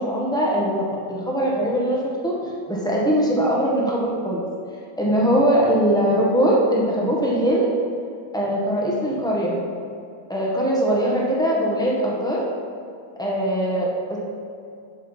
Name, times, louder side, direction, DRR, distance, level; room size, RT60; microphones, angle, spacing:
voice 1, 0.0-2.3 2.7-4.4 5.0-7.7 8.3-9.6 10.3-12.4 13.2-14.2, equal, 5° left, -5 dB, 1.0 m, -21 dB
7.6 x 5.4 x 4.1 m, 2.4 s
omnidirectional pair, 1.9 m